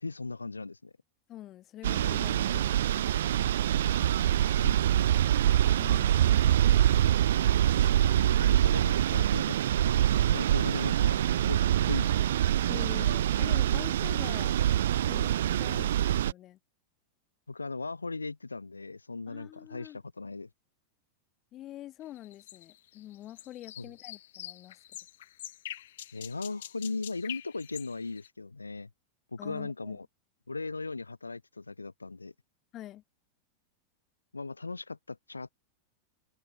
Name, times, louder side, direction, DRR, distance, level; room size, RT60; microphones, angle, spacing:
voice 1, 0.0-0.9 3.8-5.1 7.8-12.2 15.7-15.9 17.5-20.5 23.8-23.9 26.1-28.9 29.3-30.1 30.5-32.3 34.3-35.5, left 3 dB, 80° left, 0.8 m, -38 dB
voice 2, 1.3-2.8 5.8-6.4 12.7-14.6 15.1-16.6 19.3-20.0 21.5-24.8 29.4-30.0 32.7-33.0, left 14 dB, 35° left, 1.4 m, -45 dB
sound 1, 1.8-16.3, right 11 dB, 60° right, 0.3 m, -25 dB
sound 2, 22.2-28.3, left 13 dB, 60° left, 0.5 m, -45 dB
figure-of-eight pair, 90°, 0 cm